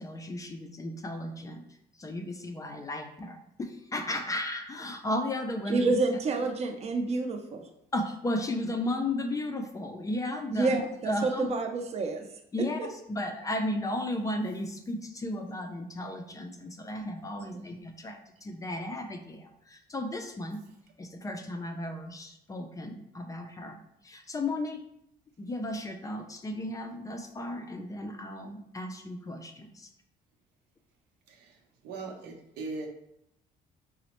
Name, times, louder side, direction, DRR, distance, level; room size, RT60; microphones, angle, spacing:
voice 1, 0.0-1.6 2.0-5.9 7.9-10.8 11.1-11.5 12.5-20.6 21.0-24.8 25.4-29.9, left 1 dB, 20° left, 5 dB, 0.3 m, -34 dB
voice 2, 5.7-7.7 10.5-12.2 17.5-17.6, right 3 dB, 40° right, 5 dB, 0.5 m, -28 dB
voice 3, 31.8-32.9, right 3 dB, 90° right, 1 dB, 0.7 m, -39 dB
4.0 x 2.0 x 2.9 m, 0.79 s
cardioid pair, 110°, 17 cm